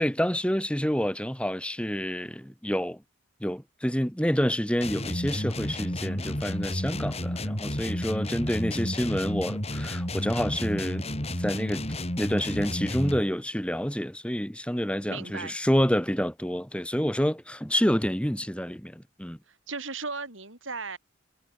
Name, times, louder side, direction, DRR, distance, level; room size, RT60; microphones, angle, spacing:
voice 1, 0.0-3.0 3.4-11.1 11.4-11.8 12.2-19.4, equal, 5° left, 5.9 m, -28 dB
sound 1, 4.8-13.3, left 1 dB, 30° left, 4.6 m, -31 dB
voice 2, 15.1-15.5 19.5-21.0, right 4 dB, 75° right, 6.9 m, -36 dB
head